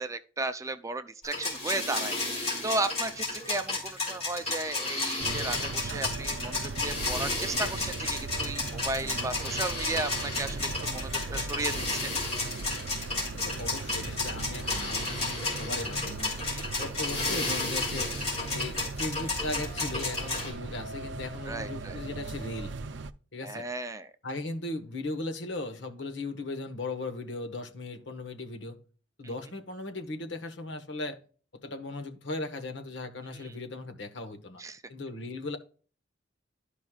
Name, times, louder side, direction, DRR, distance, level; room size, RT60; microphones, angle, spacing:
voice 1, 0.0-12.1 16.4-16.6 21.5-22.0 23.4-24.1 33.3-33.5 34.6-34.8, right 2 dB, 15° right, 0.5 m, -35 dB
sound 1, 1.2-20.5, left 3 dB, 35° left, 3.9 m, -32 dB
sound 2, 5.2-23.1, right 3 dB, 70° right, 0.5 m, -38 dB
voice 2, 13.4-16.4 16.8-18.1 18.5-22.8 23.3-23.7 24.2-28.8 29.2-31.2 31.6-34.6 34.9-35.6, left 2 dB, 70° left, 1.2 m, -37 dB
12.5 x 5.3 x 2.4 m
head